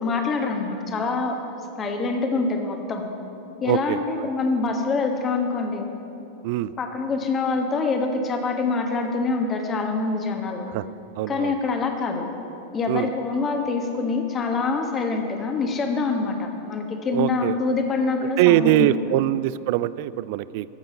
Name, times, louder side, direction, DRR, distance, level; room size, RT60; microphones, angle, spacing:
voice 1, 0.0-1.4 1.8-3.0 3.6-5.9 6.8-10.7 11.3-12.2 12.7-19.2, left 4 dB, 25° left, 4 dB, 1.3 m, -25 dB
voice 2, 3.6-4.3 6.4-6.7 10.7-10.8 11.2-11.5 12.9-13.1 17.1-17.6 18.4-20.7, right 15 dB, 50° right, 17 dB, 0.3 m, -22 dB
12.5 x 7.4 x 6.7 m, 2.9 s
figure-of-eight pair, 90°, 0 cm